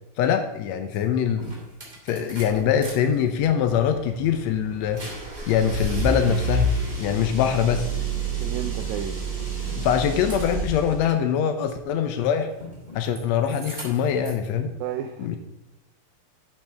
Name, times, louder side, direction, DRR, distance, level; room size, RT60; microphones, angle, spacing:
voice 1, 0.2-1.6 2.1-5.0 5.5-7.8 9.8-12.5 12.9-14.7 15.2-15.4, left 8 dB, 90° left, 7 dB, 1.5 m, -23 dB
sound 1, 0.9-1.0 1.4-2.9 3.3-11.0 12.5-13.2 13.5-14.4, right 2 dB, 15° right, 2.2 m, -30 dB
voice 2, 8.4-9.2 14.8-15.4, right 10 dB, 85° right, 6 dB, 1.6 m, -32 dB
11.5 x 7.6 x 3.5 m, 0.97 s
omnidirectional pair, 4.0 m